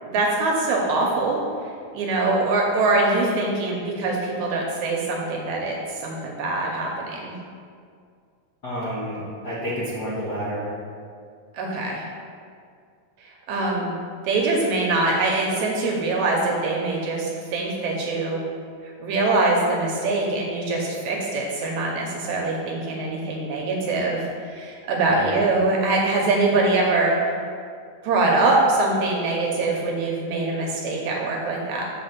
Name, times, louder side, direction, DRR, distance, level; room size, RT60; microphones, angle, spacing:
voice 1, 0.0-1.4 1.9-7.3 11.5-12.0 13.2-13.9 14.2-18.4 19.0-27.3 28.0-31.8, right 2 dB, 75° right, -1 dB, 1.9 m, -23 dB
voice 2, 8.6-10.7 25.1-25.4, equal, 60° left, -10 dB, 1.0 m, -29 dB
7.6 x 4.1 x 5.9 m, 2.2 s
omnidirectional pair, 3.9 m